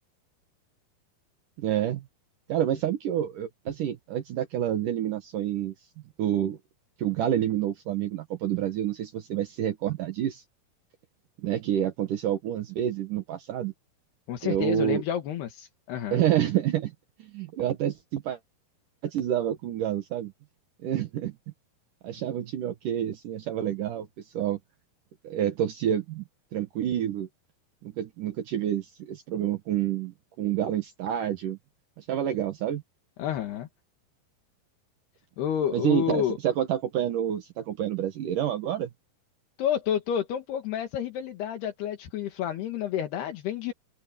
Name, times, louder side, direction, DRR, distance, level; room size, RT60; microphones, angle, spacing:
voice 1, 1.6-2.0 2.5-5.7 6.2-6.6 7.0-10.4 11.4-13.7 14.4-15.0 16.1-16.9 17.2-18.4 19.0-20.3 20.8-21.4 22.0-24.1 24.3-24.6 25.2-26.2 26.5-27.3 27.8-31.6 32.0-32.8 35.7-38.9, right 10 dB, 65° right, 2.5 m, -28 dB
voice 2, 14.3-16.2 33.2-33.7 35.4-36.4 39.6-43.7, left 10 dB, 75° left, 3.8 m, -29 dB
omnidirectional pair, 4.7 m